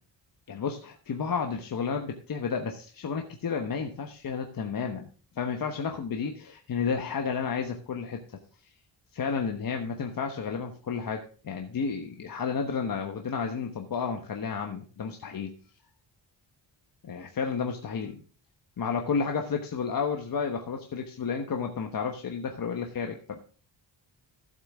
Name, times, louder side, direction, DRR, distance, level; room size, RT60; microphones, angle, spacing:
voice 1, 0.5-5.1 5.3-8.2 9.1-15.5 17.1-18.2 18.8-23.4, left 5 dB, 50° left, 4 dB, 1.2 m, -31 dB
14.5 x 8.1 x 3.6 m, 0.38 s
wide cardioid pair, 165°, 44 cm